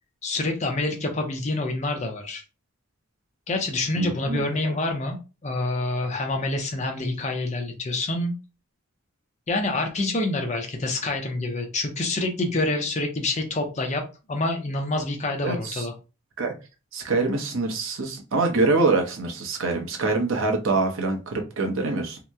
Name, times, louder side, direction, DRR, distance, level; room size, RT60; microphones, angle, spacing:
voice 1, 0.2-2.4 3.5-5.2 5.4-8.3 9.5-14.0 14.3-15.9, left 2 dB, 30° left, 3 dB, 0.5 m, -27 dB
voice 2, 4.0-4.8 15.4-15.9 16.4-16.5 16.9-22.2, right 3 dB, 65° right, 2 dB, 0.7 m, -25 dB
2.8 x 2.0 x 3.4 m, 0.31 s
head